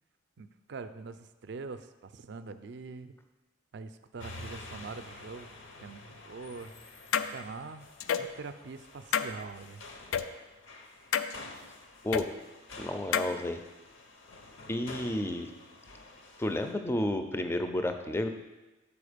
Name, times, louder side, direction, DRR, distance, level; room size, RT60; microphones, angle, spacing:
voice 1, 0.4-3.2 3.7-5.5 5.8-6.7 7.3-7.9 8.2-9.8, right 4 dB, 55° right, 11 dB, 0.4 m, -43 dB
sound 1, 4.2-16.7, left 2 dB, 65° left, 0.7 m, -49 dB
sound 2, 7.1-7.3 8.0-8.3 9.1-9.3 10.1-10.3 11.1-11.3 12.1-12.2 13.1-13.3, left 8 dB, 85° left, 0.3 m, -28 dB
voice 2, 12.8-13.6 14.7-15.5 16.4-18.3, left 1 dB, 10° left, 7 dB, 0.4 m, -31 dB
7.0 x 4.6 x 5.0 m, 1.1 s
head